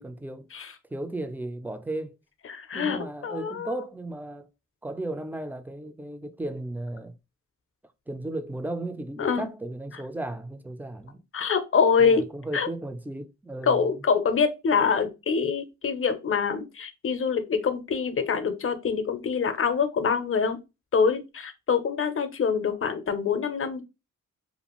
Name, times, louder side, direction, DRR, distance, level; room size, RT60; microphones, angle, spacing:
voice 1, 0.0-0.5 0.9-2.2 2.7-4.5 4.8-7.1 8.1-11.2 12.0-14.0, right 1 dB, 5° right, 0.4 m, -35 dB
voice 2, 2.4-3.8 9.2-9.5 11.3-12.2 12.5-12.7 13.6-20.6 20.9-23.8, left 6 dB, 45° left, 0.6 m, -25 dB
2.5 x 2.4 x 2.9 m
cardioid pair, 60°, 31 cm